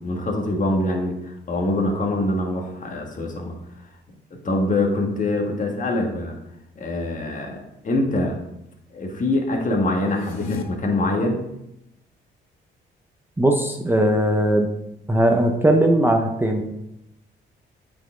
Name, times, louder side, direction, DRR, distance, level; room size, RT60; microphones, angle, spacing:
voice 1, 0.0-3.8 4.3-6.4 6.8-8.4 8.9-11.4, left 2 dB, 40° left, 1 dB, 1.6 m, -24 dB
sound 1, 10.0-10.6, left 5 dB, 80° left, 0.7 m, -32 dB
voice 2, 13.4-14.7 15.1-16.6, right 1 dB, 10° right, 2 dB, 0.7 m, -19 dB
8.5 x 4.2 x 3.8 m, 0.84 s
cardioid pair, 90°, 20 cm